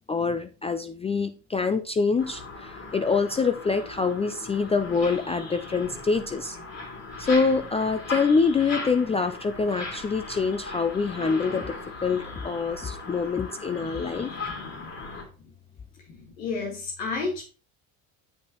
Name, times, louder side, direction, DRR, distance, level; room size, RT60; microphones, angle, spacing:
voice 1, 0.1-6.6 7.2-11.7 12.0-14.3, left 4 dB, 15° left, 10 dB, 0.4 m, -25 dB
sound 1, 2.2-15.2, left 3 dB, 40° left, 3.0 m, -38 dB
voice 2, 13.7-14.9 16.4-17.4, left 4 dB, 80° left, -1 dB, 2.0 m, -33 dB
8.3 x 6.0 x 2.9 m, 0.34 s
supercardioid pair, 80°, 40 cm